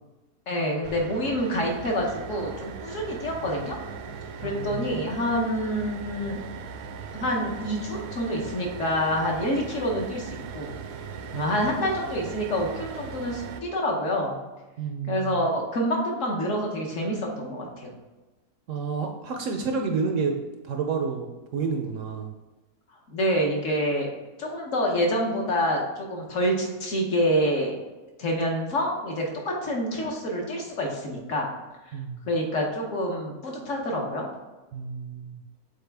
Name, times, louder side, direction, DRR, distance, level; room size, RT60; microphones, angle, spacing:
voice 1, 0.5-3.8 4.4-6.4 7.1-10.8 11.3-14.4 15.1-17.9 23.1-24.1 24.4-27.7 28.2-31.5 32.3-34.3, equal, 55° left, 0 dB, 1.3 m, -27 dB
sound 1, 0.8-13.6, right 5 dB, 85° right, 1.1 m, -39 dB
voice 2, 4.4-5.0 11.3-11.6 14.8-15.4 18.7-20.3 20.6-22.3 31.9-32.2 34.7-35.4, right 5 dB, 65° right, 4 dB, 0.8 m, -30 dB
7.1 x 4.0 x 3.4 m, 1.1 s
omnidirectional pair, 1.6 m